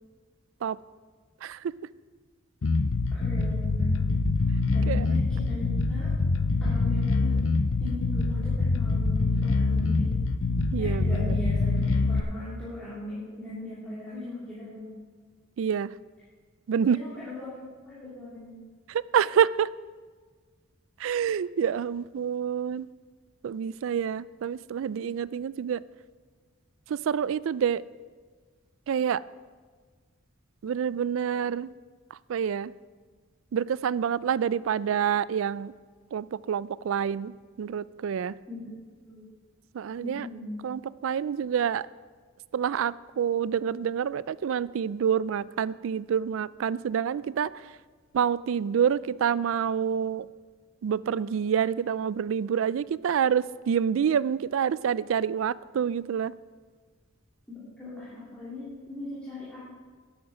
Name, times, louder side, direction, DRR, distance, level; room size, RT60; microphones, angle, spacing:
voice 1, 1.4-1.7 4.9-5.1 10.7-11.4 15.6-15.9 16.7-17.0 18.9-19.7 21.0-22.9 23.4-25.8 26.9-27.8 28.9-29.2 30.6-31.7 32.1-32.7 33.5-35.7 36.1-38.3 39.7-40.3 40.6-41.9 42.5-47.7 48.1-50.3 50.8-56.3, right 8 dB, 70° right, 19 dB, 0.3 m, -27 dB
Bass guitar, 2.6-12.2, left 3 dB, 70° left, 0.6 m, -25 dB
voice 2, 3.2-3.9 4.7-6.1 6.6-7.4 7.8-10.1 10.8-14.9 16.9-18.6 38.5-38.6 39.0-39.2 40.0-40.5 57.5-59.6, left 2 dB, 5° left, -12 dB, 3.2 m, -39 dB
12.5 x 8.8 x 4.9 m, 1.5 s
head